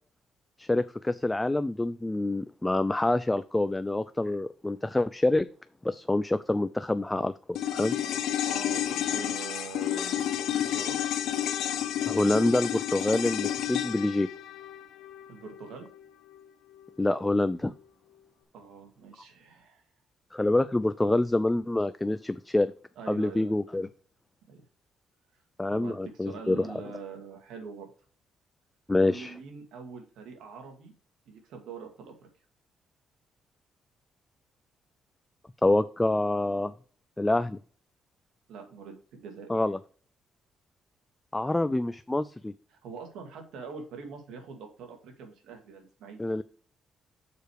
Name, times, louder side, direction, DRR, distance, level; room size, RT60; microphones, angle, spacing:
voice 1, 0.6-5.5 5.8-8.0 12.1-14.3 17.0-17.7 20.3-22.7 23.1-23.9 25.6-26.7 28.9-29.3 35.6-36.7 37.2-37.6 39.5-39.8 41.3-42.5 46.2-46.4, left 2 dB, 15° left, 13 dB, 0.4 m, -26 dB
sound 1, 7.6-16.0 16.3-16.4, left 10 dB, 85° left, 0.8 m, -31 dB
voice 2, 8.4-11.0 15.3-15.9 18.5-19.8 23.0-23.9 24.5-24.6 25.7-27.9 29.0-30.9 31.3-32.3 38.5-39.5 42.7-46.2, right 5 dB, 85° right, 4 dB, 2.2 m, -44 dB
6.8 x 4.8 x 4.8 m, 0.43 s
cardioid pair, 90°, 0 cm